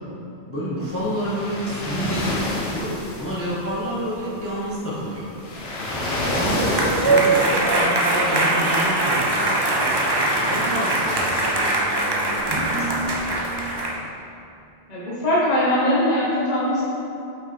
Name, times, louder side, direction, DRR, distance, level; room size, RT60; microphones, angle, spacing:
voice 1, 0.5-5.4 6.1-13.4, equal, 15° left, -8 dB, 0.8 m, -29 dB
sound 1, 0.8-13.8, left 1 dB, 65° left, 1.1 m, -32 dB
sound 2, 6.1-14.0, right 2 dB, 35° right, 0.4 m, -22 dB
voice 2, 14.9-16.8, left 1 dB, 40° left, -9 dB, 1.2 m, -21 dB
5.5 x 4.2 x 4.3 m, 2.7 s
omnidirectional pair, 1.2 m